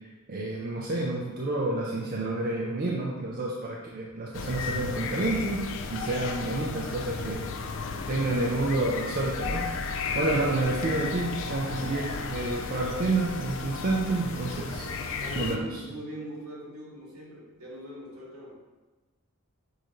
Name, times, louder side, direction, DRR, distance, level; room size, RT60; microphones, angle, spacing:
voice 1, 0.3-7.5 8.1-14.9 15.4-15.8, right 2 dB, 40° right, -3 dB, 0.5 m, -29 dB
sound 1, 4.3-15.6, left 4 dB, 60° left, 0.4 m, -34 dB
voice 2, 7.6-8.0 15.0-18.5, equal, 75° right, -4 dB, 1.3 m, -42 dB
sound 2, 9.4-13.9, left 5 dB, 35° left, 0.7 m, -39 dB
6.3 x 2.6 x 3.0 m, 1.2 s
head